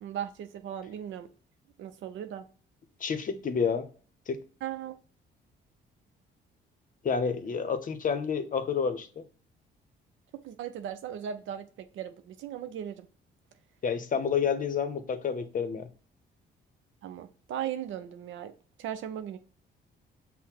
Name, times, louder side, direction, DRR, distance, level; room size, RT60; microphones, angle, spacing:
voice 1, 0.0-1.3 1.8-2.4 4.6-5.0 10.3-13.1 17.0-18.5 18.8-19.4, right 10 dB, 75° right, 0.5 m, -37 dB
voice 2, 3.0-3.9 4.3-4.4 7.0-9.2 13.8-15.9, left 6 dB, 45° left, 0.7 m, -29 dB
5.6 x 2.1 x 4.3 m
cardioid pair, 90°, 20 cm